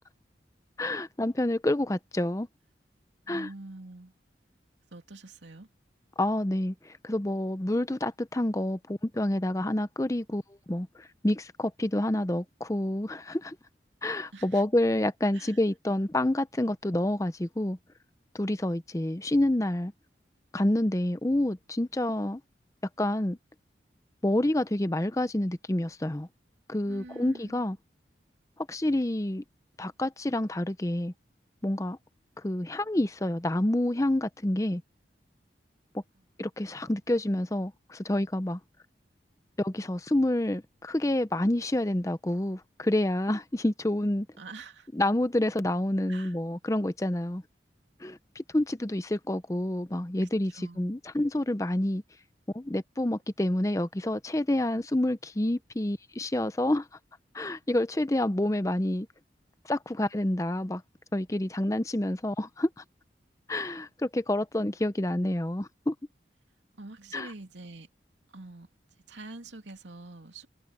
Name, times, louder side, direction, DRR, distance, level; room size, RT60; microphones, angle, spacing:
voice 1, 0.8-2.5 3.3-3.5 6.2-10.4 10.7-13.6 14.0-17.8 18.3-19.9 20.5-22.4 23.0-23.4 24.2-26.3 26.7-27.8 28.6-29.4 29.8-31.1 31.6-32.0 32.4-34.8 36.4-38.6 39.6-44.3 44.9-47.4 48.0-50.5 50.8-52.0 52.5-56.9 57.3-59.1 59.6-60.8 61.1-62.8 63.5-65.9 67.1-67.3, left 1 dB, 15° left, 0.6 m, -28 dB
voice 2, 3.2-4.1 4.9-5.7 14.3-14.6 15.3-15.6 26.8-27.6 36.2-36.3 44.4-44.9 46.1-46.4 50.5-51.0 66.7-67.9 68.3-70.5, right 2 dB, 85° right, 2.7 m, -46 dB
head